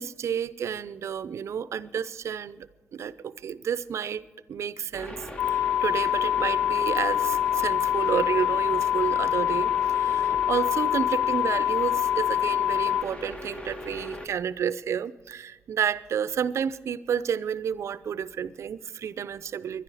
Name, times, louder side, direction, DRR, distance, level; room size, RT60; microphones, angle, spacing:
voice 1, 0.0-4.2 4.5-19.8, right 8 dB, 70° right, 16 dB, 0.6 m, -31 dB
sound 1, 4.9-14.3, left 1 dB, 20° left, 1.5 m, -38 dB
sound 2, 5.4-13.0, left 11 dB, 60° left, 0.6 m, -25 dB
22.0 x 11.5 x 4.9 m, 1.2 s
supercardioid pair, 50°, 5 cm